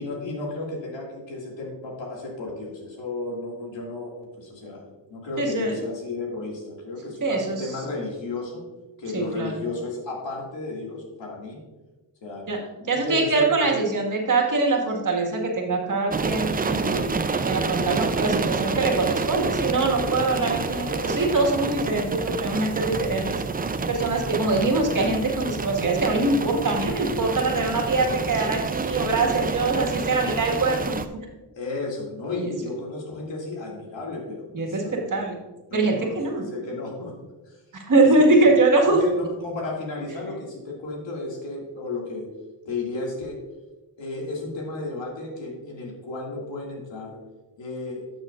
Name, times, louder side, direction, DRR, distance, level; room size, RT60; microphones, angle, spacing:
voice 1, 0.0-4.8 5.1-8.6 9.0-11.6 12.2-12.4 12.9-13.7 24.4-24.9 29.3-29.5 31.6-35.0 35.7-37.1 37.5-37.6 37.9-38.5 38.9-42.3 42.7-43.4 44.0-47.2 47.6-48.0, left 3 dB, 75° left, -2 dB, 2.4 m, -33 dB
voice 2, 5.4-5.8 7.2-7.7 9.1-9.6 12.5-17.1 17.4-31.3 32.3-32.5 34.5-35.3 35.7-36.4 37.7-39.0, right 3 dB, 45° right, 0 dB, 1.9 m, -23 dB
sound 1, 16.1-31.1, right 4 dB, 20° right, 0.5 m, -28 dB
11.5 x 6.5 x 2.5 m, 1.1 s
cardioid pair, 65°, 45 cm